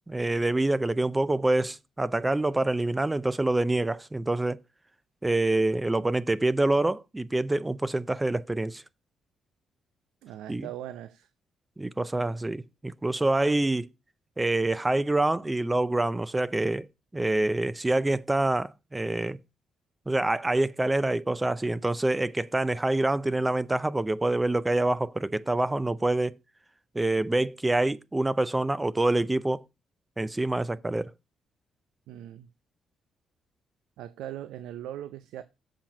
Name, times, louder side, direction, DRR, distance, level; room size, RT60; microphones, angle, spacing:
voice 1, 0.1-4.6 5.2-8.8 10.5-10.7 11.8-13.9 14.4-16.9 17.1-19.4 20.1-26.3 26.9-29.6 30.2-31.1, right 2 dB, 15° right, 0.5 m, -26 dB
voice 2, 10.2-11.3 32.1-32.5 34.0-35.4, right 12 dB, 90° right, 0.5 m, -40 dB
7.6 x 4.4 x 5.9 m
cardioid pair, 90°, 0 cm